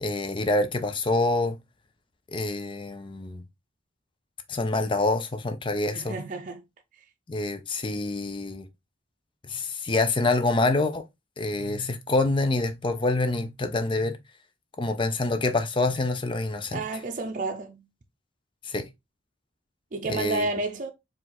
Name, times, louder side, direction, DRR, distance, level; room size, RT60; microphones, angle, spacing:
voice 1, 0.0-1.6 2.3-3.4 4.5-6.2 7.3-8.7 9.4-11.0 11.4-14.2 14.8-16.8 18.6-18.9 20.1-20.5, left 2 dB, 25° left, 0.5 m, -26 dB
voice 2, 5.9-6.6 16.7-17.9 19.9-20.9, right 3 dB, 45° right, 0.6 m, -31 dB
4.6 x 2.5 x 3.9 m
head